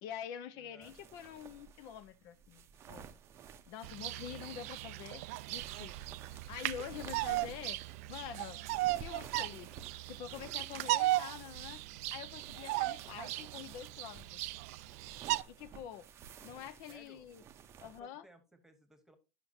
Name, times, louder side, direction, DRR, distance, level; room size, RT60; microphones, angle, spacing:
voice 1, 0.0-3.1 3.7-6.0 6.5-7.8 8.1-8.6 9.0-9.7 10.1-11.8 12.1-14.4 15.5-16.1 16.4-17.4 17.8-18.3, left 9 dB, 55° left, 0.5 m, -46 dB
voice 2, 0.6-1.0 16.9-17.3 17.8-19.2, right 1 dB, 5° right, 1.2 m, -61 dB
sound 1, 0.8-18.0, right 7 dB, 35° right, 0.6 m, -54 dB
Bird vocalization bird call bird song, 3.8-15.4, right 17 dB, 80° right, 0.3 m, -37 dB
11.0 x 5.8 x 2.6 m
supercardioid pair, 145°, 8 cm